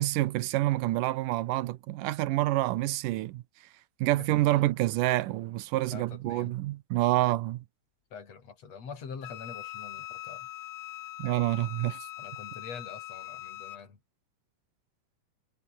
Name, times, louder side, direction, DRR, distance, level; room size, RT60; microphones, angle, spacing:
voice 1, 0.0-3.4 4.0-7.6 11.2-12.0, right 16 dB, 90° right, 2.4 m, -27 dB
voice 2, 4.2-4.6 5.9-6.5 8.1-10.5 12.2-14.0, left 5 dB, 50° left, 5.2 m, -45 dB
Wind instrument woodwind instrument, 9.2-13.8, left 14 dB, 80° left, 2.5 m, -42 dB
omnidirectional pair, 3.7 m